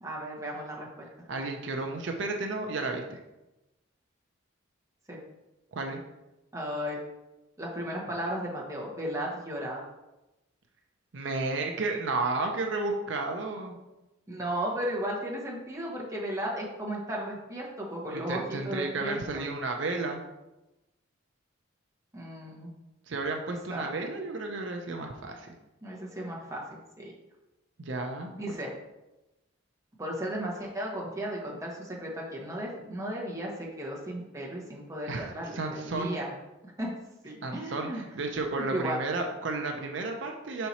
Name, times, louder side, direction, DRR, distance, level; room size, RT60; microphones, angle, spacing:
voice 1, 0.0-1.1 5.1-5.2 6.5-7.0 7.6-9.8 14.3-19.4 22.1-22.7 23.7-23.9 25.8-27.1 28.3-28.8 30.0-36.3 36.8-37.0 37.2-38.0 38.7-39.0, right 1 dB, 15° right, -3 dB, 1.1 m, -35 dB
voice 2, 1.3-3.2 5.7-6.0 11.1-13.8 18.1-20.2 23.1-25.5 27.8-28.3 35.1-36.1 37.4-40.7, right 3 dB, 65° right, 3 dB, 0.6 m, -32 dB
5.8 x 4.4 x 4.1 m, 1.0 s
head